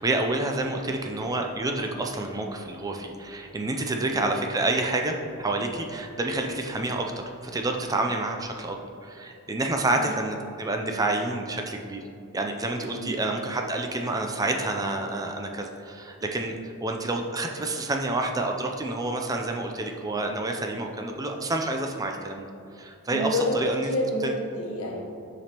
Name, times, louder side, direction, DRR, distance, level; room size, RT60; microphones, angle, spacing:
voice 1, 0.0-12.0 12.3-22.5 22.7-23.9 24.2-24.3, right 2 dB, 15° right, 3 dB, 0.4 m, -28 dB
voice 2, 12.9-13.2 23.1-25.3, left 1 dB, 75° left, -1 dB, 1.1 m, -29 dB
7.1 x 5.0 x 2.9 m, 2.5 s
head